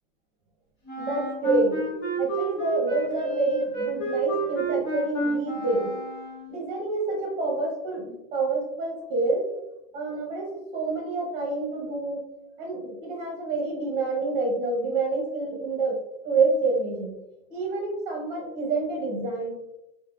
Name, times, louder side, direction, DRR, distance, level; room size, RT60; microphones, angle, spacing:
Wind instrument woodwind instrument, 0.9-6.6, right 2 dB, 25° left, 1.3 m, -30 dB
voice 1, 1.0-1.9 2.2-5.9 6.5-9.5 9.9-12.2 12.6-16.0 16.2-17.2 17.5-19.5, right 3 dB, 15° right, -1 dB, 0.5 m, -27 dB
5.7 x 2.0 x 2.3 m, 0.88 s
supercardioid pair, 160°, 41 cm